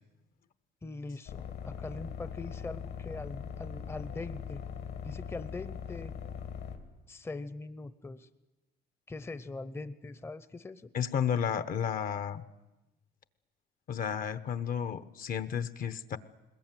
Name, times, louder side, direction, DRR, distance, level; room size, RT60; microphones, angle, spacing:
voice 1, 0.8-4.6 5.0-6.1 7.1-8.3 9.1-10.9, left 3 dB, 15° left, 13 dB, 0.7 m, -42 dB
sound 1, 1.3-6.8, left 7 dB, 75° left, 2.9 m, -41 dB
voice 2, 10.9-12.4 13.9-16.2, left 8 dB, 55° left, 14 dB, 1.1 m, -32 dB
21.0 x 20.5 x 9.2 m, 1.0 s
cardioid pair, 110°, 17 cm